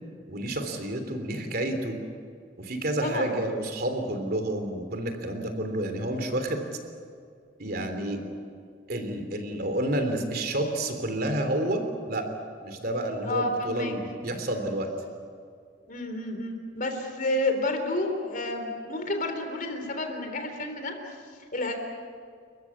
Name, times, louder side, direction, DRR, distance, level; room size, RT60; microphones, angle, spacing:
voice 1, 0.3-2.0 2.6-6.6 7.6-8.2 8.9-11.8 12.1-12.2 12.6-14.9, right 1 dB, 50° right, 6 dB, 3.2 m, -29 dB
voice 2, 3.0-3.4 13.2-14.0 15.9-20.9 21.5-21.8, left 1 dB, 45° left, 5 dB, 3.6 m, -30 dB
29.5 x 15.0 x 9.6 m, 2.2 s
head